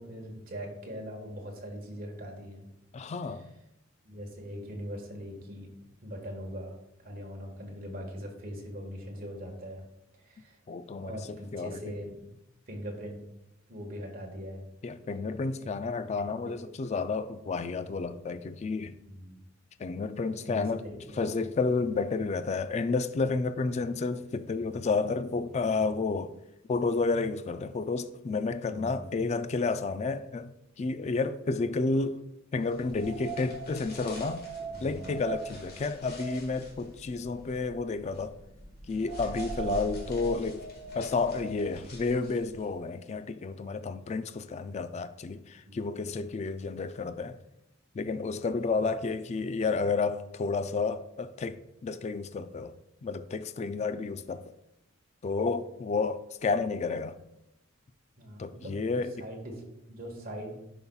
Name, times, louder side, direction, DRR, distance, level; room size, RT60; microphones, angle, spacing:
voice 1, 0.0-2.7 4.0-5.7 6.0-9.8 10.2-10.6 11.0-12.3 12.7-13.2 13.7-14.7 15.0-15.9 16.4-16.6 17.3-17.6 19.1-19.4 20.3-20.7 21.0-21.5 28.6-29.1 34.7-35.1 45.6-46.1 58.2-60.6, equal, 45° right, 1.6 m, -41 dB
voice 2, 2.9-3.5 10.7-11.8 14.8-19.0 19.8-20.8 21.2-26.3 26.7-32.2 32.5-34.4 34.8-38.4 38.9-40.7 40.9-47.4 47.9-52.7 53.0-54.5 55.2-57.2 58.4-59.3, left 4 dB, 35° left, 0.3 m, -31 dB
sound 1, 32.7-42.7, right 3 dB, 50° left, 1.7 m, -41 dB
10.5 x 5.5 x 2.4 m
head